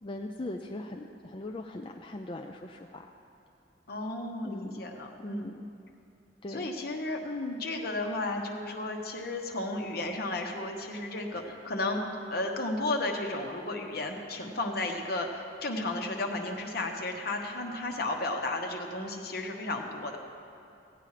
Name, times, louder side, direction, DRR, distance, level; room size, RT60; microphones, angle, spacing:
voice 1, 0.0-3.1 4.4-4.9 5.2-5.7 6.4-6.6, left 2 dB, 30° left, 2 dB, 0.5 m, -40 dB
voice 2, 3.9-5.5 6.5-12.0 12.3-20.2, left 2 dB, 60° left, 2 dB, 1.2 m, -33 dB
16.5 x 9.0 x 4.9 m, 2.6 s
head